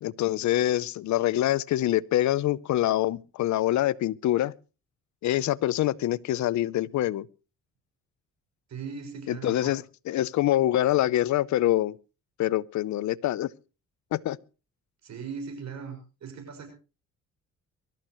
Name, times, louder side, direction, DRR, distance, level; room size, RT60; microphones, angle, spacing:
voice 1, 0.0-4.5 5.2-7.3 9.3-12.0 12.4-13.5 14.1-14.4, left 14 dB, 70° left, 0.7 m, -25 dB
voice 2, 8.7-9.8 15.0-16.7, right 6 dB, 65° right, 6.0 m, -39 dB
23.5 x 13.5 x 3.1 m
cardioid pair, 90°, 30 cm